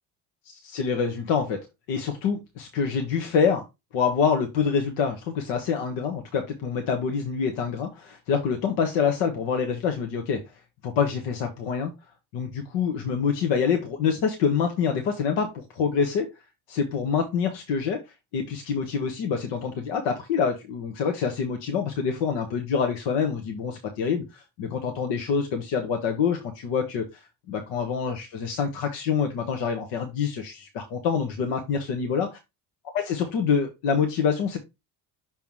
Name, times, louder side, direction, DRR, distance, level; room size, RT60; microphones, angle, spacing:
voice 1, 0.4-1.6 1.9-3.6 3.9-10.4 10.8-11.9 12.3-16.3 16.7-18.0 18.3-27.2 27.5-32.3 32.9-34.6, left 6 dB, 80° left, 4 dB, 1.2 m, -26 dB
5.9 x 3.5 x 4.6 m, 0.23 s
supercardioid pair, 70°, 43 cm